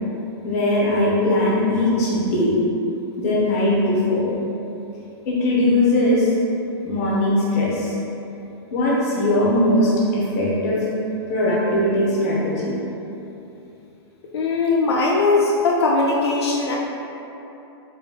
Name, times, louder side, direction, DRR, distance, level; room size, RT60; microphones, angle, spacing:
voice 1, 0.4-2.6 3.2-4.3 5.2-6.3 6.8-7.9 8.7-10.8 11.3-12.7, left 1 dB, 35° left, -6 dB, 0.9 m, -20 dB
voice 2, 14.3-16.8, left 3 dB, 75° left, -2 dB, 0.5 m, -19 dB
4.0 x 3.9 x 2.4 m, 2.9 s
hypercardioid pair, 175°, 14 cm